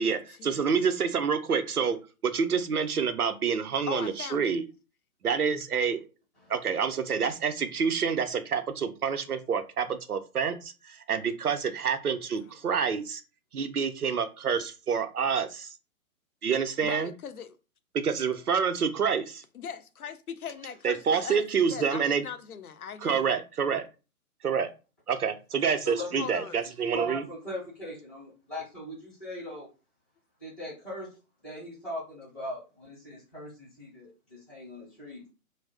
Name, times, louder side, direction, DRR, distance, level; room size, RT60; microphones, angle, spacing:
voice 1, 0.0-4.7 5.2-6.0 6.5-13.2 13.5-15.7 16.4-17.1 17.9-19.4 20.8-22.2 23.0-23.8 24.4-24.7 25.1-27.2, right 6 dB, 85° right, 0.6 m, -28 dB
voice 2, 3.9-4.6 16.8-17.6 19.5-23.4 26.2-26.6, left 7 dB, 75° left, 0.6 m, -40 dB
voice 3, 25.8-26.3 26.6-29.7 30.4-31.1 31.4-35.2, equal, ahead, 0.6 m, -39 dB
2.4 x 2.0 x 3.4 m
figure-of-eight pair, 130°, 44 cm